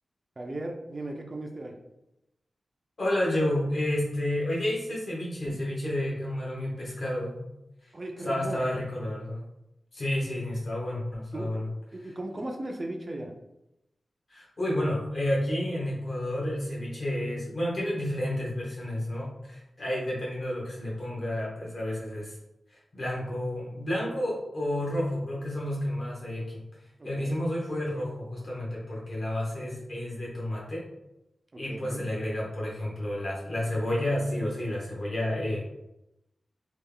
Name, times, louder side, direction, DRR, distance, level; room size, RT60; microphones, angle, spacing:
voice 1, 0.4-1.7 7.9-8.6 11.3-11.6 11.9-13.3 27.0-27.4 31.5-32.1, right 1 dB, 30° right, 2 dB, 0.4 m, -37 dB
voice 2, 3.0-7.4 7.8-7.9 8.2-9.4 9.9-11.7 14.3-22.3 22.7-26.6 27.0-30.8 31.6-35.7, left 1 dB, 50° left, -4 dB, 1.2 m, -30 dB
3.2 x 2.3 x 3.5 m, 0.90 s
wide cardioid pair, 130°, 0 cm